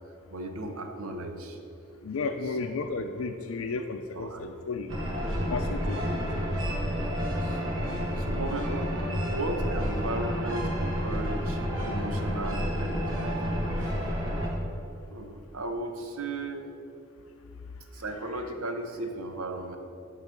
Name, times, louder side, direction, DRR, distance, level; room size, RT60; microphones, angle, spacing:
voice 1, 0.3-1.6 2.2-2.6 4.1-4.7 7.0-7.6 8.2-13.9 15.1-16.7 17.9-19.8, right 2 dB, 90° right, 5 dB, 1.0 m, -36 dB
voice 2, 2.0-4.9 5.5-6.2, left 4 dB, 80° left, 5 dB, 0.5 m, -33 dB
sound 1, 4.9-14.5, equal, 65° right, 2.1 m, -30 dB
12.0 x 4.0 x 6.7 m, 2.7 s
head